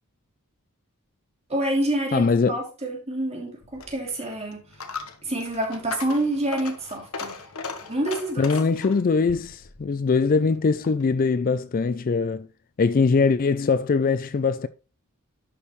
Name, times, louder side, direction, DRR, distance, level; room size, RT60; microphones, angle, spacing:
voice 1, 1.5-4.6 5.2-7.4 7.8-8.5, right 1 dB, 30° right, 2.9 m, -27 dB
voice 2, 2.1-2.6 8.4-12.5 12.8-14.7, left 4 dB, 40° left, 0.4 m, -22 dB
Coin (dropping), 3.6-11.1, left 4 dB, 70° left, 1.1 m, -38 dB
11.5 x 5.3 x 3.2 m
head